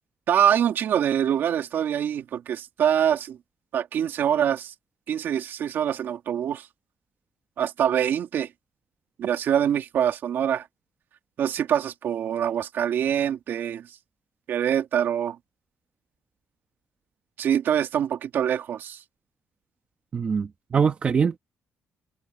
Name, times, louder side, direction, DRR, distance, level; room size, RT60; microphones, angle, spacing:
voice 1, 0.3-3.4 3.7-4.7 5.1-6.7 7.6-8.5 9.2-10.7 11.4-13.9 14.5-15.4 17.4-19.0, right 9 dB, 55° right, 2.3 m, -24 dB
voice 2, 20.1-21.4, right 6 dB, 30° right, 1.3 m, -23 dB
cardioid pair, 165°, 4 cm